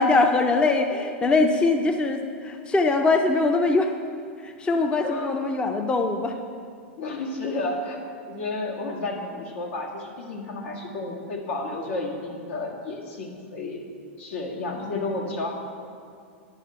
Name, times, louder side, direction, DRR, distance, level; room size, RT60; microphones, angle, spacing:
voice 1, 0.0-3.9 4.4-6.4, left 3 dB, 15° left, 5 dB, 0.5 m, -22 dB
voice 2, 4.7-5.3 7.0-8.0 8.3-13.8 14.2-15.5, left 2 dB, 80° left, -1 dB, 1.8 m, -31 dB
9.9 x 6.6 x 5.6 m, 2.3 s
hypercardioid pair, 130°, 7 cm